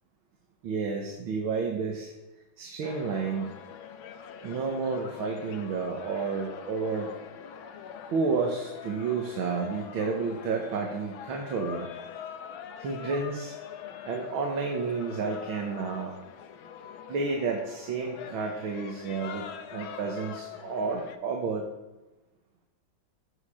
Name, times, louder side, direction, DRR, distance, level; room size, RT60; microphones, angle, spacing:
voice 1, 0.6-2.1 2.6-3.5 4.4-7.2 8.1-11.9 12.8-13.5 14.1-16.2 17.1-21.7, right 4 dB, 85° right, 1 dB, 2.1 m, -31 dB
sound 1, 2.8-21.2, left 8 dB, 85° left, 1.7 m, -44 dB
15.5 x 6.9 x 5.0 m, 1.1 s
omnidirectional pair, 2.2 m